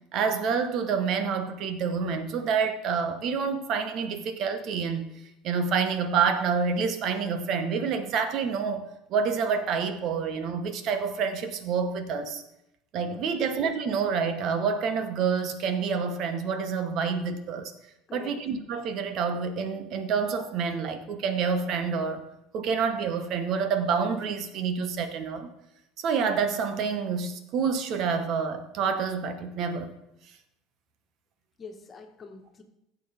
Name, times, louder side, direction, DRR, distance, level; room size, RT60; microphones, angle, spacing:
voice 1, 0.1-5.1 5.4-12.4 12.9-17.7 18.1-22.2 22.5-25.5 26.0-29.9, right 6 dB, 55° right, 1.3 m, -28 dB
voice 2, 31.6-32.6, left 5 dB, 35° left, 1.7 m, -45 dB
15.5 x 7.4 x 3.6 m
hypercardioid pair, 70°, 0 cm